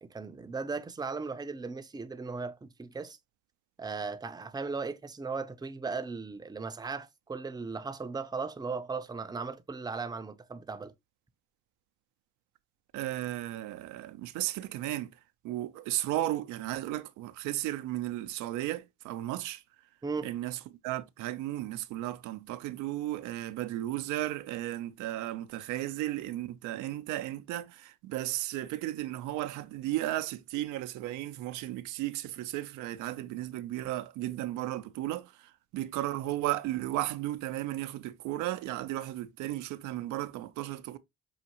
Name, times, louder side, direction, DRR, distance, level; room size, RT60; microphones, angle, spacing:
voice 1, 0.0-3.2 3.8-10.9 20.0-20.3, right 4 dB, 15° right, 0.5 m, -37 dB
voice 2, 12.9-15.1 15.4-19.6 20.2-20.6 20.8-41.0, right 15 dB, 85° right, 0.5 m, -34 dB
5.6 x 2.5 x 2.8 m
supercardioid pair, 70°, 29 cm